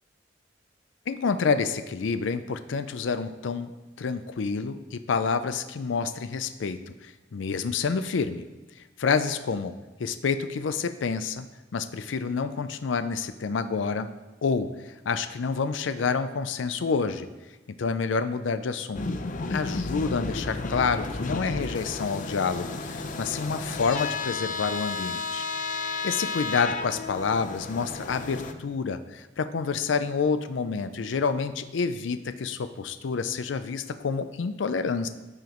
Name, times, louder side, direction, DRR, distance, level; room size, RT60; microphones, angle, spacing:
voice 1, 1.1-3.7 4.0-8.4 9.0-9.7 10.0-11.4 11.7-14.1 14.4-17.3 17.8-19.0 19.5-25.4 25.7-35.1, left 5 dB, 90° left, 10 dB, 0.5 m, -28 dB
sound 1, 18.9-28.5, left 3 dB, 45° left, 0.6 m, -32 dB
14.5 x 4.9 x 3.0 m, 1.2 s
head